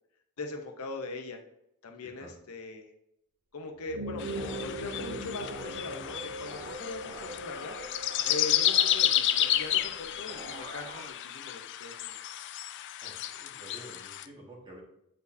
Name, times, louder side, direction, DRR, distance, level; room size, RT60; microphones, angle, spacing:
voice 1, 0.4-1.4 1.8-2.9 3.5-4.2 4.6-7.8 8.2-12.2, left 3 dB, 80° left, 4 dB, 0.8 m, -41 dB
voice 2, 2.0-2.3 13.0-14.8, equal, 20° right, -3 dB, 1.6 m, -50 dB
sound 1, 3.8-8.6, right 2 dB, 75° right, 1.0 m, -41 dB
sound 2, 4.2-14.3, left 12 dB, 55° left, 0.3 m, -31 dB
sound 3, 4.3-11.1, right 1 dB, 45° right, 1.2 m, -45 dB
8.3 x 4.4 x 2.7 m, 0.81 s
head